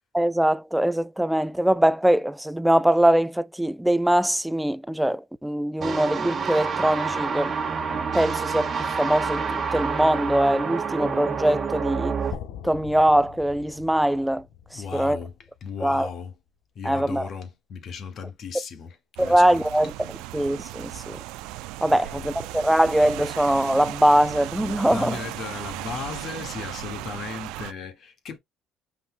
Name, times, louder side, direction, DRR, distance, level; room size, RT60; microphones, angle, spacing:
voice 1, 0.1-7.6 7.9-12.2 12.6-14.5 14.7-15.2 15.8-16.1 16.8-17.3 19.2-20.1 20.3-21.2 21.8-25.2, right 1 dB, 5° right, 0.3 m, -22 dB
sound 1, 5.8-12.3, right 5 dB, 40° right, 1.2 m, -28 dB
sound 2, 12.3-16.3, left 8 dB, 85° left, 0.9 m, -43 dB
voice 2, 14.7-15.3 15.6-16.3 16.7-19.6 21.9-22.3 24.8-28.4, left 6 dB, 55° left, 1.8 m, -36 dB
Rain, 19.2-27.7, right 17 dB, 85° right, 0.4 m, -36 dB
5.3 x 4.1 x 2.2 m
cardioid pair, 100°, 0 cm